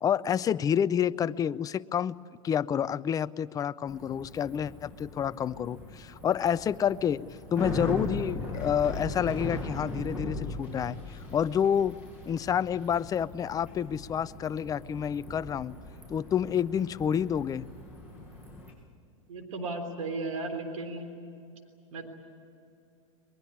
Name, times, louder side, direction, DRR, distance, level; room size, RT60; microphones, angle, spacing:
voice 1, 0.0-2.2 2.4-7.3 7.5-12.0 12.3-15.8 16.1-17.7, left 8 dB, 20° left, 16 dB, 0.5 m, -29 dB
Bicycle, 3.9-18.7, left 2 dB, 10° right, 7.3 m, -39 dB
voice 2, 19.3-21.1 21.9-22.0, right 3 dB, 80° right, 6 dB, 3.6 m, -35 dB
22.5 x 21.0 x 9.9 m, 2.6 s
hypercardioid pair, 110°, 17 cm